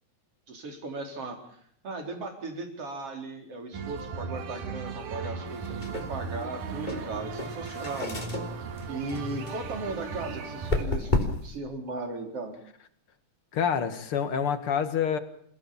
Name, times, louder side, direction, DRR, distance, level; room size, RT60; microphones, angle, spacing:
voice 1, 0.5-8.2 8.9-11.1 11.4-12.5, right 3 dB, 45° right, 4 dB, 5.1 m, -37 dB
sound 1, 3.7-10.8, right 5 dB, 80° right, 3.5 m, -37 dB
sound 2, 5.5-11.6, left 2 dB, 15° left, 3.0 m, -33 dB
voice 2, 13.5-15.2, left 7 dB, 45° left, 10 dB, 2.5 m, -27 dB
28.5 x 17.0 x 7.3 m, 0.67 s
omnidirectional pair, 3.6 m